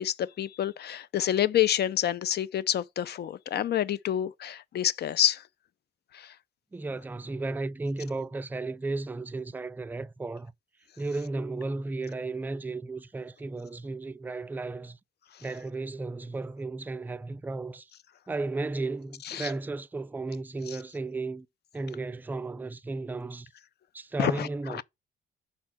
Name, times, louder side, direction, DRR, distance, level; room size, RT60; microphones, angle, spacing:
voice 1, 0.0-5.4 6.1-6.3 19.3-19.5 24.2-24.5, left 11 dB, 55° left, 0.5 m, -28 dB
voice 2, 6.7-10.5 11.0-15.0 15.4-17.9 18.3-21.5 21.7-23.5 23.9-24.8, right 3 dB, 10° right, 0.3 m, -34 dB
5.2 x 4.2 x 5.9 m
cardioid pair, 90°, 20 cm